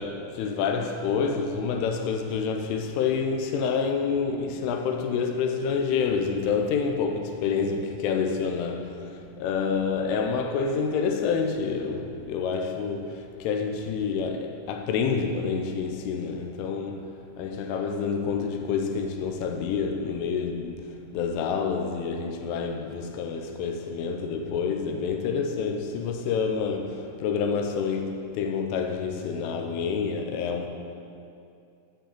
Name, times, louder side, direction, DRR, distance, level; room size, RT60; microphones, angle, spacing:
voice 1, 0.0-9.1 9.4-20.7 21.1-30.7, left 5 dB, 85° left, 3.1 m, -28 dB
9.2 x 5.0 x 7.4 m
omnidirectional pair, 5.8 m